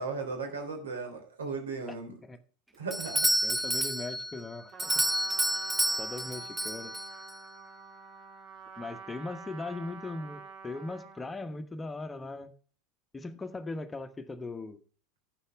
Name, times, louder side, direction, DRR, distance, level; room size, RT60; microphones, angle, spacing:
voice 1, 0.0-2.1 2.8-3.3, right 4 dB, 85° right, 5 dB, 3.1 m, -36 dB
Doorbell, 2.9-7.4, right 1 dB, 15° right, 1.2 m, -30 dB
voice 2, 3.4-5.1 6.0-6.9 8.8-12.5 13.1-14.8, left 3 dB, 15° left, 8 dB, 1.2 m, -39 dB
Trumpet, 4.7-11.3, right 5 dB, 50° right, 3.5 m, -47 dB
11.5 x 8.0 x 3.4 m, 0.41 s
hypercardioid pair, 85°, 0 cm